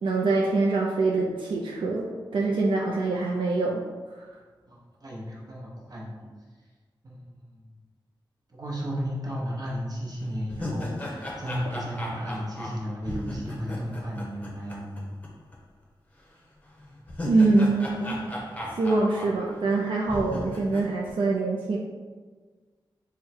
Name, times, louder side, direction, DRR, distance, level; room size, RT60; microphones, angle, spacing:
voice 1, 0.0-3.8 4.2-4.3 17.3-18.2 18.8-21.8, right 3 dB, 85° right, -2 dB, 0.4 m, -24 dB
voice 2, 4.7-6.2 7.0-7.6 8.5-15.0, equal, 50° right, -4 dB, 1.0 m, -34 dB
sound 1, 9.7-9.8 10.2-15.3 15.5-15.6 16.8-19.8 20.1-20.9, left 1 dB, 20° left, 0.7 m, -36 dB
3.6 x 2.2 x 4.3 m, 1.4 s
wide cardioid pair, 95°, 8 cm